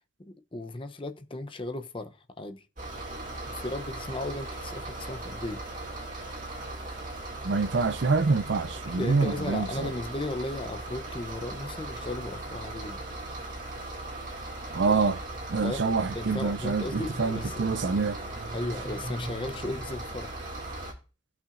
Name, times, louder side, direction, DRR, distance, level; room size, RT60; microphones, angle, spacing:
voice 1, 0.2-2.6 3.5-5.6 9.0-13.0 14.9-15.0 15.6-15.9 16.1-17.6 18.5-20.4, left 2 dB, 25° left, 0.6 m, -36 dB
sound 1, 2.8-20.9, right 2 dB, 40° right, 2.2 m, -38 dB
voice 2, 7.4-9.9 14.7-15.2 15.5-18.2, right 4 dB, 60° right, 0.5 m, -26 dB
16.5 x 5.8 x 2.5 m
head